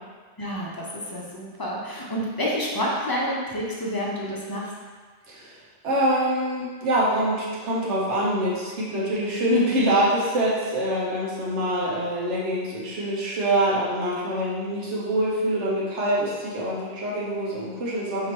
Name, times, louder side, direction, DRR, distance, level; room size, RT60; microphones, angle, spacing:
voice 1, 0.4-4.7, equal, 30° left, -4 dB, 0.5 m, -29 dB
voice 2, 5.8-18.3, right 1 dB, 85° right, -6 dB, 1.3 m, -25 dB
4.7 x 2.9 x 3.0 m, 1.5 s
omnidirectional pair, 1.2 m